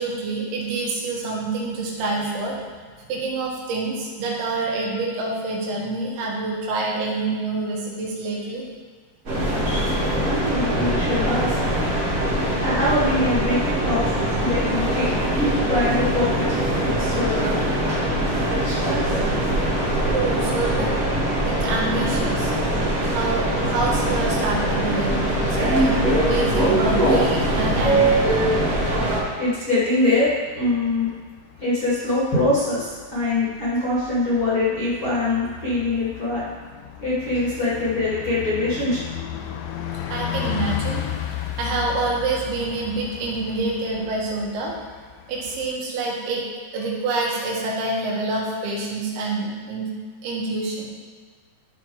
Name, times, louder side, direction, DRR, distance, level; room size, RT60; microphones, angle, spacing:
voice 1, 0.0-2.6 3.0-8.7 20.1-21.0 21.4-22.5 23.1-26.0 26.3-28.3 40.1-41.1 41.6-44.8 45.3-46.5 46.7-49.9 50.2-50.9, right 3 dB, 85° right, -3 dB, 3.8 m, -27 dB
sound 1, 9.2-29.2, right 1 dB, 45° right, 1.0 m, -22 dB
voice 2, 10.0-11.6 12.6-15.1 15.7-16.5 16.8-17.6 18.6-19.3 29.4-31.1 31.6-36.5 37.0-39.0, left 2 dB, 35° left, -10 dB, 2.2 m, -23 dB
Bus, 28.9-45.8, left 10 dB, 85° left, 2.7 m, -35 dB
12.5 x 4.5 x 4.7 m, 1.5 s
omnidirectional pair, 5.1 m